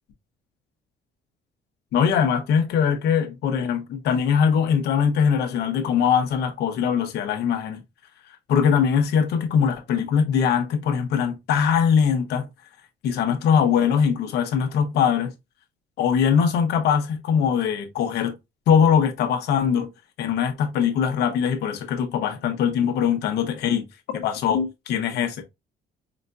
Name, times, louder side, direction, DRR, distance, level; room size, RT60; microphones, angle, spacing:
voice 1, 1.9-7.8 8.5-12.5 13.0-15.3 16.0-18.3 18.7-19.9 20.2-23.9 24.1-25.4, left 7 dB, 75° left, 0.9 m, -21 dB
4.9 x 2.3 x 2.5 m
cardioid pair, 110°, 17 cm